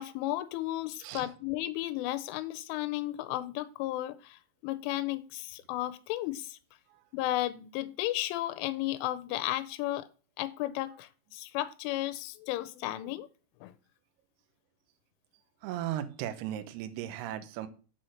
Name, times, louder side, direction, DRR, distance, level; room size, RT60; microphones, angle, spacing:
voice 1, 0.0-6.6 7.1-10.1 10.4-13.3 13.6-13.7, left 16 dB, 85° left, 13 dB, 3.1 m, -34 dB
voice 2, 15.6-17.7, right 12 dB, 80° right, 8 dB, 2.4 m, -36 dB
7.6 x 4.3 x 6.3 m, 0.36 s
omnidirectional pair, 5.6 m